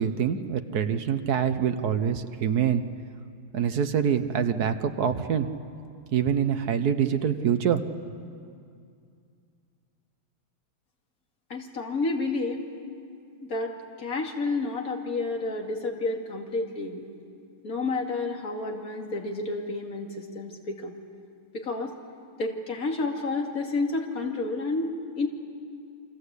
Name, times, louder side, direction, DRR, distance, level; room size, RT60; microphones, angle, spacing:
voice 1, 0.0-2.8 3.5-5.5 6.1-7.8, right 8 dB, 55° right, 9 dB, 1.3 m, -25 dB
voice 2, 11.5-12.7 13.4-17.0 17.6-21.0 21.5-22.0 22.4-25.3, left 3 dB, 40° left, 1 dB, 2.7 m, -30 dB
29.0 x 24.5 x 8.3 m, 2.4 s
omnidirectional pair, 2.3 m